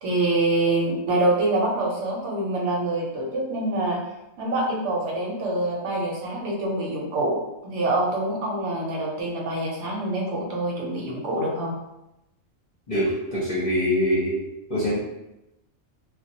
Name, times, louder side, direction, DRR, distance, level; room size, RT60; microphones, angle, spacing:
voice 1, 0.0-4.0 4.4-7.4 7.6-11.7, right 2 dB, 65° right, -2 dB, 1.0 m, -25 dB
voice 2, 12.9-14.4 14.7-14.9, equal, 45° left, -8 dB, 0.7 m, -24 dB
2.2 x 2.2 x 2.7 m, 0.90 s
omnidirectional pair, 1.4 m